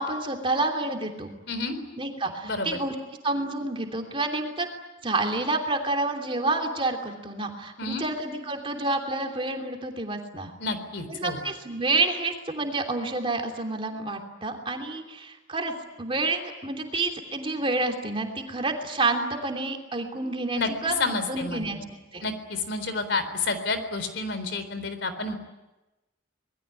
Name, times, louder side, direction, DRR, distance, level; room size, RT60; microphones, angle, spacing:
voice 1, 0.0-1.3 2.0-2.9 3.2-4.7 5.0-10.5 11.1-21.0 21.3-21.8 22.1-22.3, right 2 dB, 25° right, 3 dB, 3.0 m, -29 dB
voice 2, 2.4-2.8 7.8-8.1 10.6-11.4 20.6-20.7 21.0-21.7 22.2-25.4, left 3 dB, 65° left, 10 dB, 3.9 m, -30 dB
26.0 x 21.5 x 9.9 m, 1.0 s
head